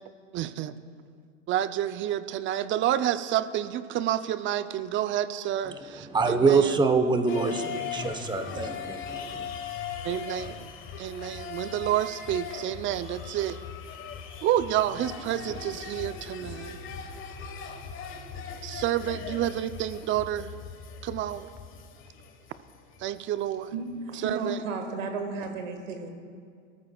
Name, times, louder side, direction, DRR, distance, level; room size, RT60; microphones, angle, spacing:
voice 1, 0.3-0.8 1.5-6.8 10.0-10.7 11.0-13.6 14.4-16.8 18.6-20.5 21.0-21.5 23.0-23.7 24.2-24.6, right 12 dB, 30° right, 0.5 m, -29 dB
voice 2, 5.7-9.5, right 4 dB, 10° right, 0.9 m, -25 dB
sound 1, 7.3-23.6 23.9-24.0, left 7 dB, 30° left, 1.4 m, -40 dB
voice 3, 23.7-26.1, right 4 dB, 90° right, 1.8 m, -33 dB
22.0 x 14.0 x 2.4 m
hypercardioid pair, 110°, 38 cm